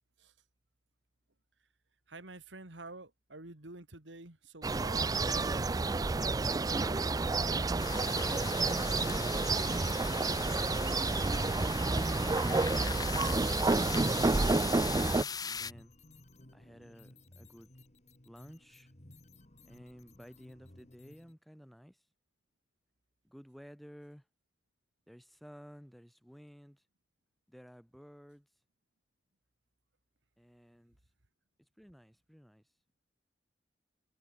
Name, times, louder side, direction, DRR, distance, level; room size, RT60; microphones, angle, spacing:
voice 1, 2.1-5.1, right 2 dB, 80° right, 2.9 m, -49 dB
sound 1, 4.6-15.2, right 3 dB, 20° right, 0.4 m, -30 dB
voice 2, 6.7-7.2 8.1-10.0 10.3-10.8 11.5-13.0 13.7-15.9 16.5-17.7 18.2-18.9 19.6-22.0 23.2-24.2 25.1-26.8 27.5-28.5 30.4-31.0 31.8-32.6, equal, ahead, 3.6 m, -51 dB
sound 2, 7.8-15.7, left 6 dB, 20° left, 0.7 m, -40 dB
sound 3, 15.5-21.3, left 1 dB, 40° left, 2.8 m, -58 dB
head